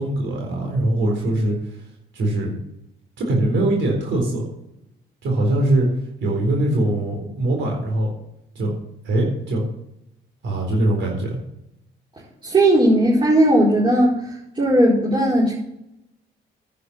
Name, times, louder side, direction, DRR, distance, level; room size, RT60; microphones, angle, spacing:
voice 1, 0.0-1.5 2.1-2.5 3.2-4.4 5.2-5.9 6.2-8.1 8.6-8.7 9.0-9.6 10.4-11.4, right 1 dB, 70° right, 0 dB, 4.1 m, -21 dB
voice 2, 12.4-14.2 14.5-15.5, right 1 dB, 25° right, -6 dB, 4.6 m, -16 dB
10.5 x 8.3 x 7.1 m, 0.82 s
cardioid pair, 90°, 20 cm